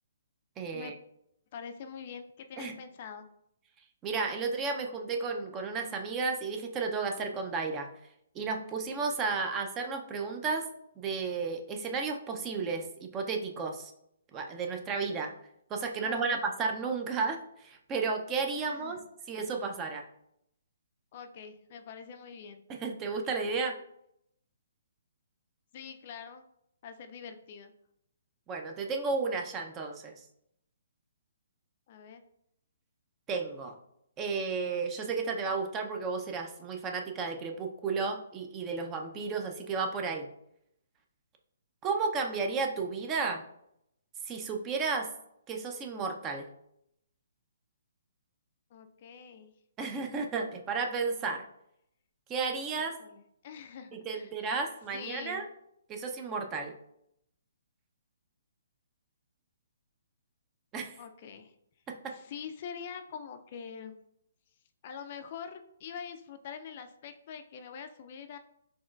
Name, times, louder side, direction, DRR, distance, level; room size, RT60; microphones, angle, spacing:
voice 1, 0.6-0.9 2.6-2.7 4.0-7.9 8.3-10.7 11.0-13.9 14.3-15.3 15.7-19.0 19.3-20.0 22.7-23.8 28.5-30.1 33.3-33.7 34.2-40.3 41.8-43.4 44.3-45.1 45.5-46.5 49.8-51.4 52.3-53.0 53.9-55.4 55.9-56.7 60.7-61.0 61.9-62.2, right 4 dB, 20° right, 3 dB, 0.4 m, -33 dB
voice 2, 1.5-3.2 16.0-16.4 18.6-19.0 21.1-22.6 25.7-26.4 26.8-27.7 31.9-32.2 48.7-49.5 52.7-54.6 54.9-55.4 61.0-61.5 62.1-63.9 64.8-68.4, left 7 dB, 45° left, 8 dB, 0.3 m, -44 dB
4.3 x 3.0 x 2.3 m, 0.76 s
figure-of-eight pair, 135°, 0 cm